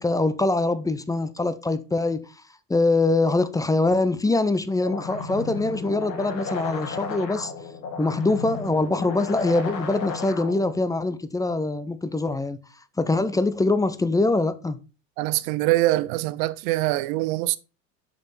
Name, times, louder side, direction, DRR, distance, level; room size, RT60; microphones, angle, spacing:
voice 1, 0.0-2.2 2.7-7.5 8.0-12.6 13.0-14.8, left 2 dB, 10° left, 0.5 m, -23 dB
sound 1, 4.8-10.8, left 4 dB, 85° left, 1.5 m, -34 dB
voice 2, 15.2-17.6, right 18 dB, 60° right, 0.8 m, -23 dB
7.1 x 5.3 x 4.1 m
hypercardioid pair, 80°, 49 cm